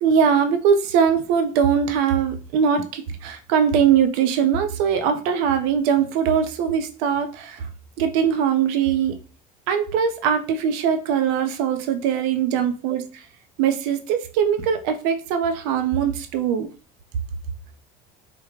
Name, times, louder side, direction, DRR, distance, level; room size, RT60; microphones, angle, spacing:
voice 1, 0.0-7.7 8.0-9.2 9.7-13.2 13.6-16.7, right 7 dB, 70° right, 0.5 m, -21 dB
3.6 x 2.1 x 3.0 m
hypercardioid pair, 80°, 20 cm